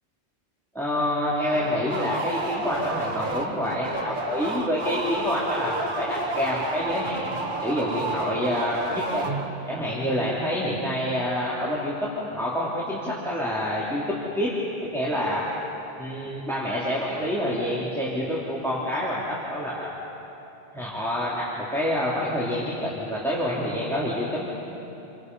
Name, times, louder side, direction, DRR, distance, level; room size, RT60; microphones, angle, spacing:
voice 1, 0.8-9.3 9.7-14.5 14.9-15.4 16.0-19.9 20.7-24.5, equal, ahead, -7 dB, 3.3 m, -27 dB
sound 1, 1.5-9.8, right 2 dB, 45° right, 1.8 m, -31 dB
30.0 x 24.0 x 5.5 m, 3.0 s
omnidirectional pair, 1.2 m